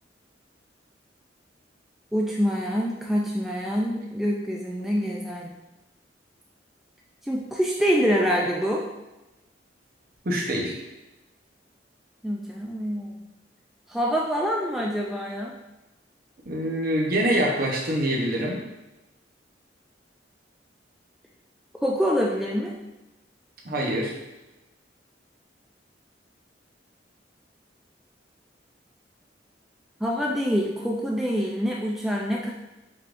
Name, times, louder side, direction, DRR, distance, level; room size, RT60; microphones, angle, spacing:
voice 1, 2.1-5.5 7.2-8.8 12.2-13.1 13.9-15.6 21.8-22.7 30.0-32.5, equal, ahead, -2 dB, 0.3 m, -25 dB
voice 2, 10.2-10.8 16.4-18.6 23.6-24.1, right 1 dB, 50° right, -2 dB, 0.9 m, -25 dB
5.4 x 3.5 x 2.5 m, 1.0 s
head